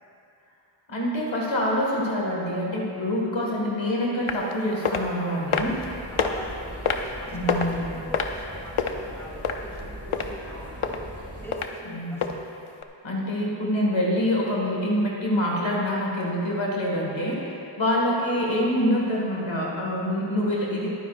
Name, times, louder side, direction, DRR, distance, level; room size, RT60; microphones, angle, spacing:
voice 1, 0.9-5.8 7.3-7.9 11.9-12.3 13.0-20.9, equal, 70° left, -3 dB, 1.8 m, -26 dB
sound 1, 4.3-4.5 4.8-5.0 5.5-5.8 6.2-6.3 6.9-7.1 7.5-7.8 8.1-8.9 9.4-9.8 10.1-10.3 10.8-11.0 11.5-11.7 12.2-12.3 12.8-12.9, left 6 dB, 90° left, 0.7 m, -25 dB
voice 2, 4.8-6.8 7.2-11.0 11.4-11.8 12.1-12.3 13.1-13.3, equal, 5° left, -6 dB, 2.9 m, -43 dB
sound 2, 5.5-11.5, right 1 dB, 30° right, 2.4 m, -40 dB
21.5 x 9.4 x 2.5 m, 2.7 s
wide cardioid pair, 45°, 48 cm